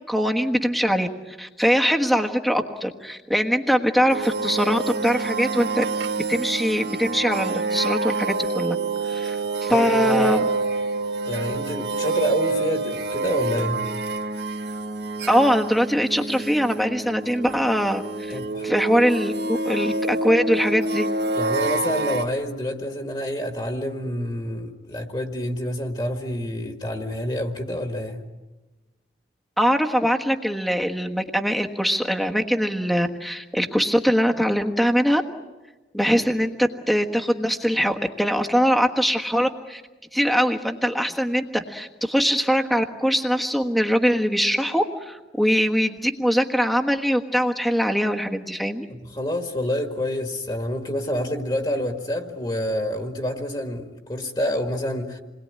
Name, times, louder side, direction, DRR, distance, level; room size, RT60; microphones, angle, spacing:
voice 1, 0.1-5.8 6.3-8.8 9.0-10.5 15.2-18.4 18.6-21.1 29.6-35.2 35.9-39.8 40.1-48.8, equal, ahead, 3 dB, 1.4 m, -22 dB
sound 1, 4.1-22.2, right 3 dB, 80° right, 2.1 m, -27 dB
voice 2, 9.7-10.4 11.2-13.8 18.3-18.7 21.3-28.2 48.9-55.2, left 1 dB, 25° left, 4 dB, 1.9 m, -28 dB
28.5 x 21.0 x 9.6 m, 1.2 s
head